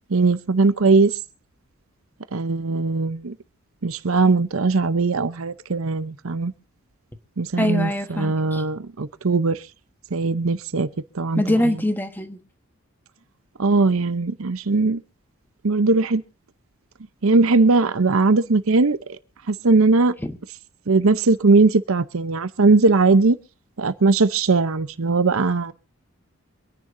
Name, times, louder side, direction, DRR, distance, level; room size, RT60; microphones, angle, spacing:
voice 1, 0.1-1.1 2.3-3.3 3.8-6.5 7.4-9.6 10.1-10.9 11.1-11.4 13.6-15.0 15.6-16.2 17.2-19.2 19.5-20.1 20.9-23.4 23.8-25.7, right 3 dB, 70° right, 0.7 m, -19 dB
voice 2, 7.6-8.6 11.4-12.4 20.2-20.4, left 1 dB, 10° left, 1.2 m, -23 dB
25.5 x 10.5 x 2.7 m
head